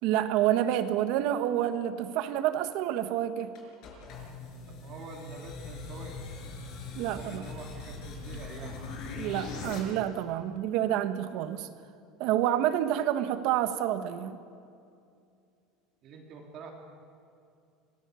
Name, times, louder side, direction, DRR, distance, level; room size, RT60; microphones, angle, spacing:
voice 1, 0.0-3.5 6.9-7.4 9.2-11.7 12.2-14.4, right 11 dB, 60° right, 10 dB, 1.4 m, -28 dB
sound 1, 3.5-9.8, left 4 dB, 50° left, 5.3 m, -41 dB
voice 2, 4.7-6.3 7.0-8.8 16.0-16.7, right 4 dB, 40° right, 0 dB, 3.3 m, -46 dB
25.0 x 18.5 x 7.1 m, 2.5 s
cardioid pair, 155°, 0 cm